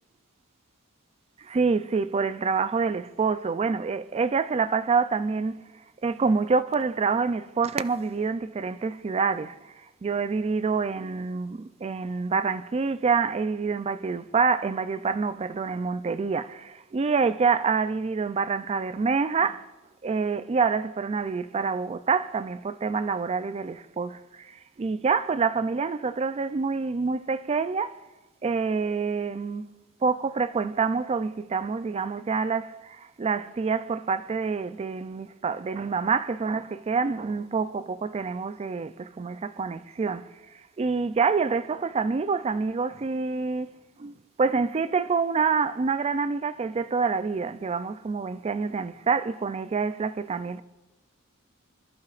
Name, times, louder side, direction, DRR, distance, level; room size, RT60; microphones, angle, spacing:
voice 1, 1.4-5.6 6.0-9.7 10.0-19.7 20.0-28.0 28.4-29.7 30.0-40.3 40.8-43.7 44.0-50.6, right 5 dB, 30° right, 0.4 m, -27 dB
26.5 x 11.5 x 2.5 m
head